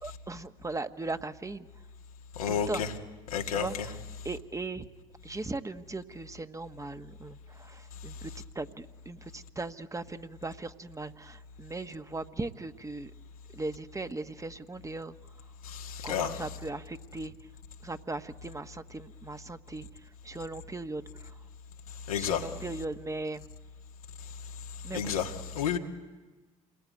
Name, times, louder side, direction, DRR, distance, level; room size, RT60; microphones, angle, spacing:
voice 1, 0.0-1.7 2.5-2.8 3.5-4.0 4.2-4.9 5.2-13.1 13.5-15.1 16.0-17.5 17.8-21.4 22.2-23.5 24.8-25.1, right 3 dB, 15° right, 1.3 m, -38 dB
voice 2, 2.4-2.9 3.3-3.9 15.7-16.4 22.1-22.5 24.9-25.8, left 7 dB, 90° left, 1.9 m, -31 dB
28.0 x 20.5 x 9.6 m
hypercardioid pair, 60°, 18 cm